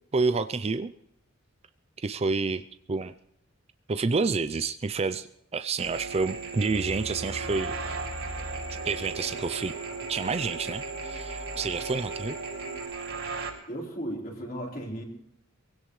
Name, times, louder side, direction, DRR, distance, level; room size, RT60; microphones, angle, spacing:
voice 1, 0.1-0.9 2.0-2.6 2.9-3.1 3.9-5.3 5.5-7.8 8.8-9.7 10.1-12.4, right 4 dB, 30° right, 11 dB, 0.5 m, -28 dB
sound 1, 5.8-13.5, right 4 dB, 65° right, 4.3 m, -37 dB
sound 2, 6.7-12.9, right 1 dB, 80° left, 4.1 m, -41 dB
voice 2, 13.7-15.0, right 1 dB, 45° left, -1 dB, 4.2 m, -35 dB
23.5 x 16.5 x 3.2 m, 0.80 s
head